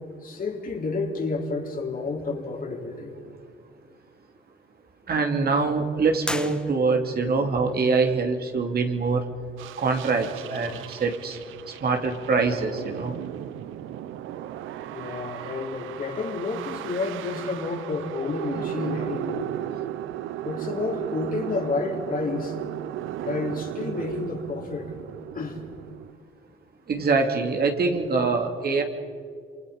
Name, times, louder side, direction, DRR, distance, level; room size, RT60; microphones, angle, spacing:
voice 1, 0.2-3.2 14.9-19.5 20.4-22.6 23.2-24.9 25.3-25.6, left 3 dB, 45° left, 1 dB, 3.8 m, -30 dB
voice 2, 5.1-9.2 9.8-11.4 11.7-13.1 26.9-28.8, right 4 dB, 50° right, 3 dB, 2.8 m, -24 dB
sound 1, 6.2-7.3, left 1 dB, 5° left, 1.7 m, -34 dB
sound 2, 9.6-26.1, right 12 dB, 90° right, 0.7 m, -36 dB
28.0 x 24.0 x 5.3 m, 2.2 s
cardioid pair, 90°, 20 cm